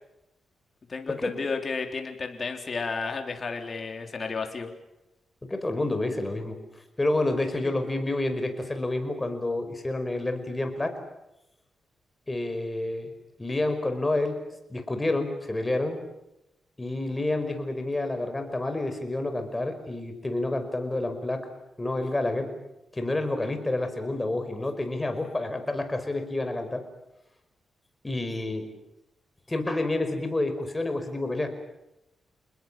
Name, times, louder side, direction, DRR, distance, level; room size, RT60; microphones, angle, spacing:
voice 1, 0.9-4.7, left 4 dB, 45° left, 4 dB, 3.7 m, -32 dB
voice 2, 5.4-6.6 7.0-11.0 12.3-13.1 13.4-14.4 14.7-16.0 16.8-21.5 21.8-22.5 22.9-26.8 28.0-28.7 29.5-31.5, left 2 dB, 20° left, 7 dB, 5.2 m, -29 dB
29.0 x 20.5 x 7.6 m, 0.91 s
cardioid pair, 80°, 0 cm